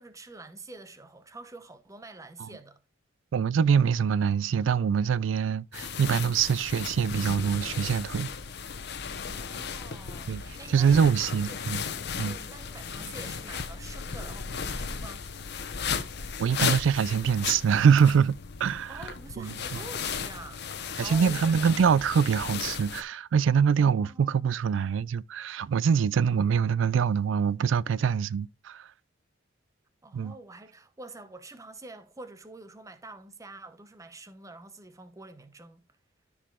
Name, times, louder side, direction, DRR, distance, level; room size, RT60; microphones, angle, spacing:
voice 1, 0.0-2.8 9.3-11.7 12.1-15.3 18.9-21.7 23.8-24.6 30.0-35.8, right 2 dB, 15° right, 0.8 m, -47 dB
voice 2, 3.3-8.3 10.3-10.4 10.7-11.8 12.2-12.4 16.4-19.0 19.4-19.8 21.0-28.9 30.1-30.3, right 7 dB, 70° right, 0.3 m, -24 dB
sound 1, 5.7-23.0, left 6 dB, 60° left, 0.9 m, -35 dB
13.5 x 4.8 x 2.4 m
head